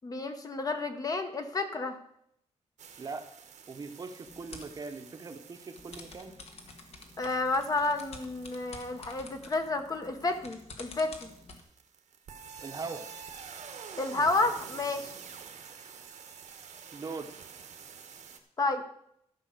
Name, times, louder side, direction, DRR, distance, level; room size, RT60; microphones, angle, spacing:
voice 1, 0.0-2.0 7.2-11.1 14.0-15.1 18.6-18.8, left 3 dB, 30° left, 7 dB, 1.0 m, -30 dB
sound 1, 2.8-18.4, right 6 dB, 85° right, 1.3 m, -49 dB
voice 2, 3.7-6.3 12.6-13.1 16.9-17.3, right 4 dB, 35° right, 7 dB, 0.9 m, -40 dB
sound 2, 4.2-4.8 5.8-11.6, left 3 dB, 60° left, 1.5 m, -49 dB
13.5 x 5.6 x 6.5 m, 0.72 s
wide cardioid pair, 175°, 12 cm